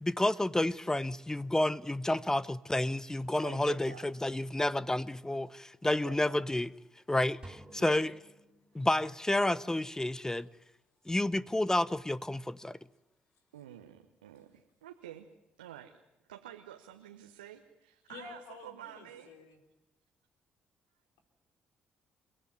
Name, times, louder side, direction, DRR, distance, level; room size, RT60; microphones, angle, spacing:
voice 1, 0.0-6.7 7.1-8.1 8.7-10.5 11.1-12.8, left 1 dB, 10° left, 0.8 m, -30 dB
voice 2, 3.4-4.0 5.8-6.5 7.8-8.0 8.7-8.9 10.1-10.3 13.5-15.3 15.6-16.0 16.3-19.3, right 11 dB, 80° right, 1.1 m, -49 dB
sound 1, 7.4-9.2, right 1 dB, 20° right, 4.1 m, -53 dB
voice 3, 18.1-19.6, left 5 dB, 70° left, 4.3 m, -50 dB
30.0 x 17.0 x 9.2 m
figure-of-eight pair, 40°, 5 cm